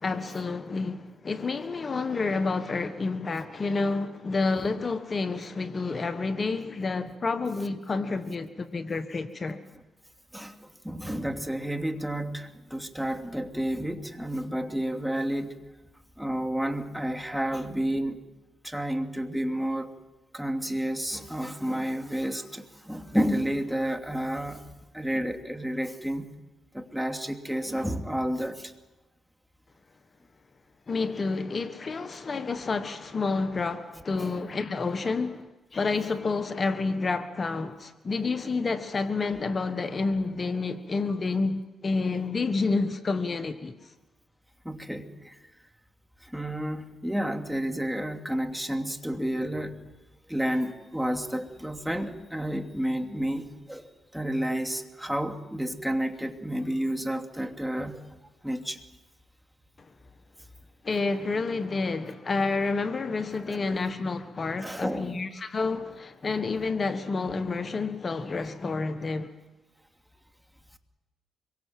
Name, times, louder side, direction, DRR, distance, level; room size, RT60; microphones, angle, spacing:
voice 1, 0.0-9.6 30.9-35.5 35.7-43.7 60.8-69.3, left 3 dB, 40° left, 1.3 m, -29 dB
voice 2, 10.8-15.5 16.2-18.2 18.6-19.9 20.3-24.6 24.9-26.3 26.7-28.7 34.2-34.4 44.6-45.3 46.3-49.8 50.3-58.0 58.4-58.8 63.5-63.8 64.6-65.1, equal, 5° right, 2.5 m, -30 dB
25.0 x 23.5 x 7.6 m
supercardioid pair, 65°, 0 cm